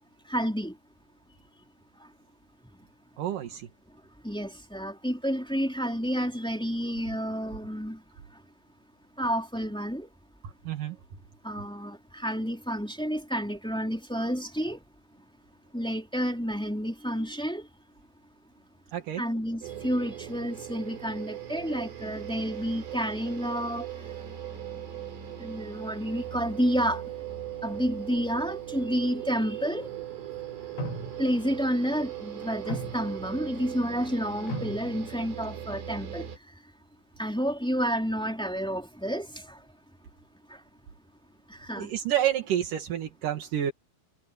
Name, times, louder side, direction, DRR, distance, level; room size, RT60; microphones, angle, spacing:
voice 1, 0.3-0.7 4.2-8.0 9.2-10.1 11.4-14.8 15.7-17.7 19.2-23.8 25.4-27.0 27.6-29.9 31.2-36.3 37.2-39.6 40.5-40.6 41.6-41.9, equal, ahead, 2.7 m, -30 dB
voice 2, 3.2-3.7 10.4-11.0 18.9-19.2 41.8-43.7, right 11 dB, 55° right, 2.7 m, -29 dB
sound 1, 19.6-36.4, right 10 dB, 90° right, 7.4 m, -39 dB
sound 2, 30.8-31.5 32.4-33.4 34.0-34.1 34.5-35.5, right 1 dB, 75° left, 6.1 m, -37 dB
omnidirectional pair, 5.5 m